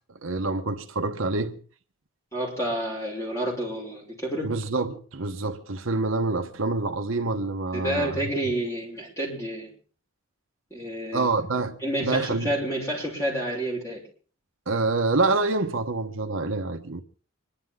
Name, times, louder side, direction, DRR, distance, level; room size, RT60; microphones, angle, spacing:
voice 1, 0.2-1.6 4.4-8.2 11.1-12.5 14.7-17.0, right 3 dB, 65° right, 1.1 m, -27 dB
voice 2, 2.3-4.5 7.7-9.7 10.7-11.3 11.8-14.0, right 1 dB, 15° left, 6.2 m, -29 dB
26.5 x 11.5 x 3.8 m
head